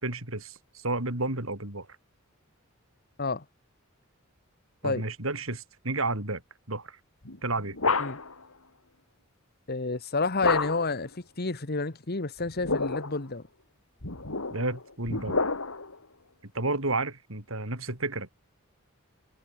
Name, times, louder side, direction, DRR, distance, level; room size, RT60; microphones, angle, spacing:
voice 1, 0.0-1.9 4.8-6.4 6.7-7.0 7.4-7.8 14.5-15.4 16.4-18.3, right 2 dB, 75° right, 5.1 m, -31 dB
sound 1, 7.2-8.4 10.4-11.0 12.4-13.2 14.0-16.0, left 4 dB, 85° left, 2.9 m, -30 dB
voice 2, 9.7-13.4, left 3 dB, 50° left, 1.5 m, -30 dB
head